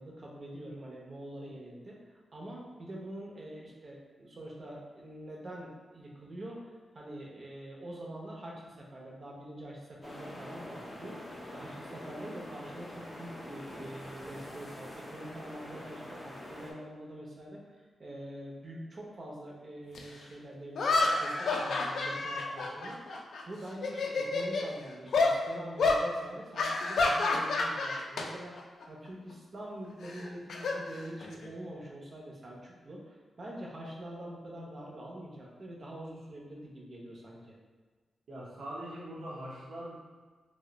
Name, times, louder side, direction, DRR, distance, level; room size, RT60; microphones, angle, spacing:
voice 1, 0.0-11.3 11.5-23.1 23.5-37.5, right 1 dB, 40° right, -3 dB, 0.6 m, -45 dB
sound 1, 10.0-16.7, left 1 dB, 15° left, 0.5 m, -45 dB
sound 2, 19.9-20.0 20.8-23.4 23.7-24.7 25.1-25.4 25.8-26.0 26.6-28.3 28.6-28.8 30.0-31.5, left 3 dB, 70° left, 0.3 m, -29 dB
voice 2, 38.3-39.9, right 1 dB, 75° right, -7 dB, 0.7 m, -42 dB
2.6 x 2.1 x 3.8 m, 1.4 s
wide cardioid pair, 150°, 0 cm